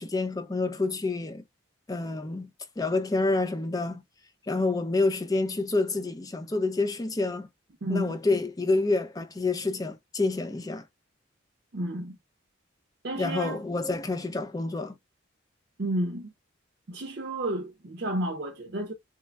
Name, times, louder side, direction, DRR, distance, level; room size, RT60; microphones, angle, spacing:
voice 1, 0.0-1.4 1.9-2.5 2.8-4.0 4.5-7.5 7.9-10.8 13.1-15.0, left 3 dB, 20° left, 0.4 m, -28 dB
voice 2, 7.8-8.2 11.7-12.2 13.0-13.6 15.8-16.3 16.9-18.9, right 1 dB, 55° right, 0.6 m, -31 dB
3.2 x 2.2 x 3.2 m
head